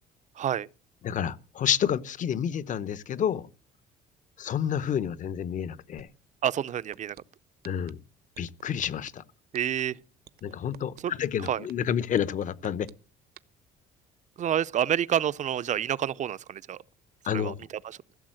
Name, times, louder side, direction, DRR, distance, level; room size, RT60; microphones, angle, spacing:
voice 1, 0.4-0.7 6.4-7.2 9.5-10.0 11.0-11.1 11.5-11.6 14.4-16.8 17.3-17.5 17.8-18.0, right 10 dB, 45° right, 0.6 m, -28 dB
voice 2, 1.0-3.5 4.4-6.1 7.6-8.0 8.4-9.2 10.4-12.9 17.2-17.6, left 9 dB, 50° left, 0.9 m, -29 dB
sound 1, 6.0-6.1 6.4-7.2 7.6-7.9 8.3-9.1 9.5-9.8 10.3-11.0 11.4-11.7 12.2-12.9 13.4-13.5, right 13 dB, 65° right, 0.9 m, -48 dB
16.0 x 7.2 x 7.7 m
cardioid pair, 110°, 17 cm